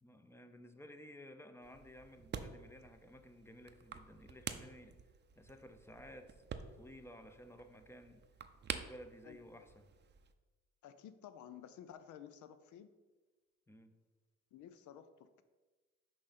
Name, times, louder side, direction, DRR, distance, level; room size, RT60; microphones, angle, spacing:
voice 1, 0.0-5.0 5.4-6.4 6.8-8.2 8.7-9.9 13.7-14.0, equal, 10° left, 8 dB, 0.6 m, -55 dB
sound 1, 1.6-10.3, right 7 dB, 35° right, 0.5 m, -49 dB
voice 2, 10.8-12.9 14.5-15.4, left 9 dB, 75° left, 12 dB, 0.6 m, -53 dB
6.1 x 5.1 x 4.2 m, 1.3 s
cardioid pair, 90°, 30 cm